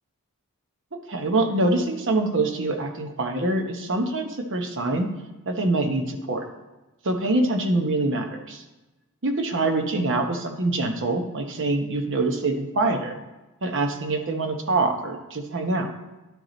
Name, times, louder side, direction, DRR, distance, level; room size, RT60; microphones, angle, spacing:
voice 1, 0.9-5.1 5.5-6.4 7.0-8.6 9.2-13.1 13.6-15.9, right 2 dB, 60° right, 5 dB, 1.0 m, -25 dB
11.0 x 4.8 x 3.9 m, 1.1 s
head